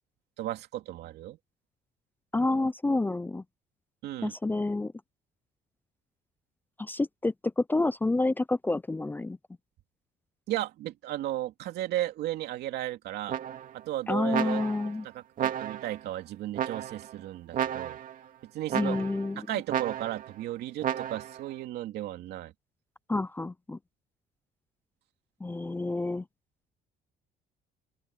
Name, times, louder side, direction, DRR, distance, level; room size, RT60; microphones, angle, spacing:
voice 1, 0.4-1.4 4.0-4.3 10.5-13.4 13.7-14.6 15.0-18.0 18.4-19.0 19.5-22.5, right 14 dB, 75° right, 2.8 m, -35 dB
voice 2, 2.3-3.4 4.2-4.9 6.8-9.4 14.1-15.1 18.7-19.6 23.1-23.8 25.4-26.2, left 2 dB, 10° left, 0.5 m, -29 dB
sound 1, 13.3-13.8 14.3-15.0 15.4-16.0 16.6-17.1 17.5-18.2 18.7-19.3 19.7-20.3 20.8-21.4, right 10 dB, 55° right, 2.2 m, -33 dB
open air
cardioid pair, 110°, 17 cm